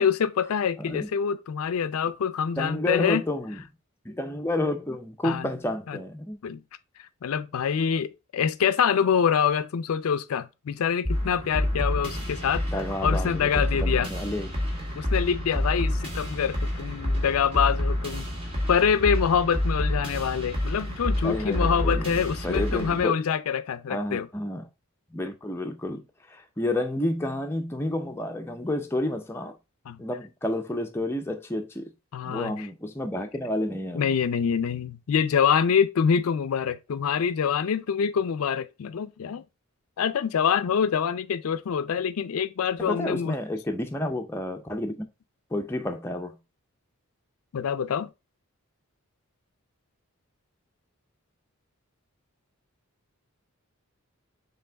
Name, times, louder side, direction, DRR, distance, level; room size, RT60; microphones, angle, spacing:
voice 1, 0.0-3.2 5.2-5.5 5.9-6.0 6.4-6.6 7.0-14.1 14.9-18.3 18.6-24.3 29.9-30.0 32.1-32.7 33.9-39.4 40.0-43.4 47.5-48.1, left 7 dB, 75° left, 0.4 m, -25 dB
voice 2, 2.6-3.6 4.1-6.4 12.7-14.5 21.2-22.1 22.4-23.2 23.9-24.6 25.1-26.0 26.3-29.5 30.0-31.9 32.2-34.1 42.8-44.9 45.5-46.4, left 1 dB, 10° left, 0.5 m, -30 dB
sound 1, 11.0-23.0, left 1 dB, 25° right, 1.6 m, -28 dB
4.6 x 3.5 x 3.3 m
head